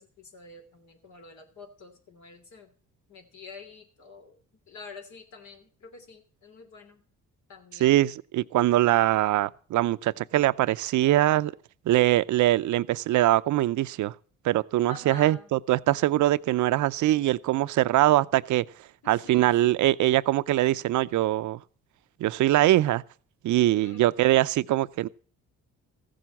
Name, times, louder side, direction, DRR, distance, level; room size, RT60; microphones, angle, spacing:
voice 1, 0.0-2.7 3.1-7.0 7.5-8.0 14.9-15.5 19.0-19.6 23.5-24.1, left 4 dB, 70° left, 3.2 m, -48 dB
voice 2, 7.8-11.5 11.9-14.1 14.4-18.6 19.1-21.6 22.2-23.0 23.4-25.1, right 15 dB, 75° right, 0.6 m, -23 dB
15.0 x 7.8 x 7.1 m
cardioid pair, 90°, 30 cm